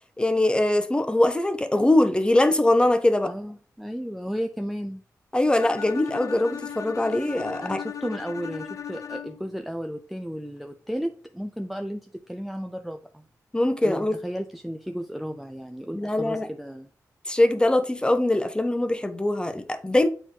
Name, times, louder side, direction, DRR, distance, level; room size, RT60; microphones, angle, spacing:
voice 1, 0.2-3.3 5.3-7.8 13.5-14.2 15.9-16.5 17.3-20.1, left 1 dB, 15° left, 0.9 m, -22 dB
voice 2, 3.2-5.0 7.6-13.2 13.8-16.9, equal, ahead, 0.5 m, -34 dB
Bowed string instrument, 5.6-9.6, left 8 dB, 60° left, 0.5 m, -37 dB
8.7 x 3.4 x 3.9 m
cardioid pair, 75°, 6 cm